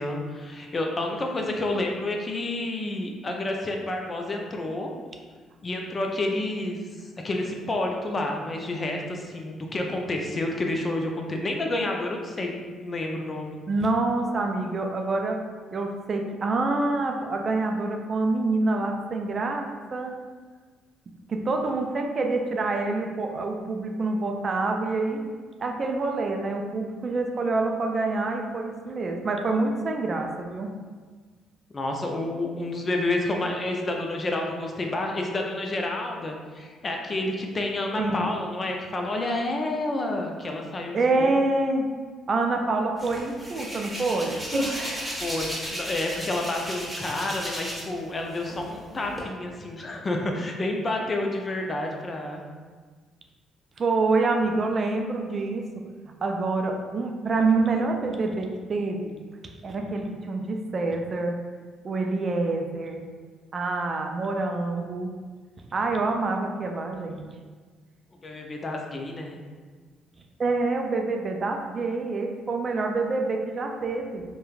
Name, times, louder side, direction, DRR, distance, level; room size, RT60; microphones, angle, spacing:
voice 1, 0.0-4.9 5.6-13.6 31.7-41.3 45.2-52.4 68.2-69.4, left 2 dB, 35° left, 1 dB, 0.4 m, -29 dB
voice 2, 13.7-15.4 15.7-20.1 21.3-25.2 25.6-30.7 38.0-38.3 40.9-41.9 42.3-44.4 53.8-55.7 56.2-59.1 59.6-61.4 61.8-63.0 63.5-65.1 65.7-67.2 70.4-74.2, right 3 dB, 45° right, 3 dB, 0.3 m, -26 dB
Hands, 43.0-48.0 48.3-49.2, equal, 5° right, 1.1 m, -33 dB
3.0 x 2.2 x 2.4 m, 1.5 s
supercardioid pair, 65°, 0 cm